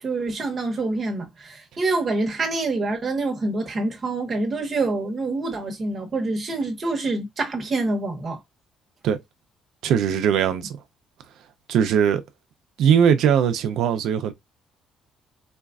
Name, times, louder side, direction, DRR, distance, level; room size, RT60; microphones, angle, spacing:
voice 1, 0.0-8.4, right 3 dB, 30° right, 1.1 m, -26 dB
voice 2, 9.8-10.8 11.7-12.2 12.8-14.3, right 8 dB, 70° right, 0.7 m, -20 dB
4.4 x 2.4 x 2.4 m
cardioid pair, 155°, 0 cm